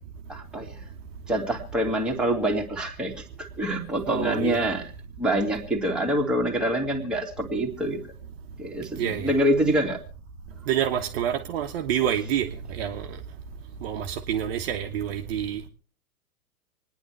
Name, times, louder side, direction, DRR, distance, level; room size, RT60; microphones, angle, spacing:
voice 1, 0.3-0.8 1.3-4.8 5.2-8.0 8.6-10.0, right 1 dB, ahead, 2.2 m, -26 dB
voice 2, 4.1-4.6 9.0-9.3 10.7-13.0 13.8-15.6, right 9 dB, 40° right, 1.3 m, -27 dB
27.0 x 10.0 x 3.2 m
figure-of-eight pair, 115°, 45 cm